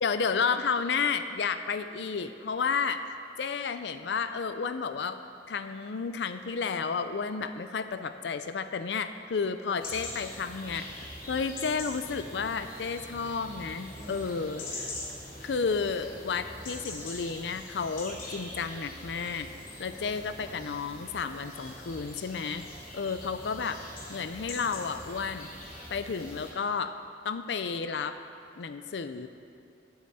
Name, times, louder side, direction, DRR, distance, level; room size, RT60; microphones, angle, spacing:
voice 1, 0.0-3.0 3.4-5.2 5.5-10.9 11.3-14.9 15.4-19.5 19.8-22.6 22.9-23.8 24.1-25.5 25.9-27.0 27.2-28.2 28.6-29.3, left 5 dB, 70° left, 10 dB, 0.5 m, -32 dB
sound 1, 9.8-26.5, left 1 dB, 50° left, 3.0 m, -43 dB
15.5 x 9.6 x 4.2 m, 2.4 s
head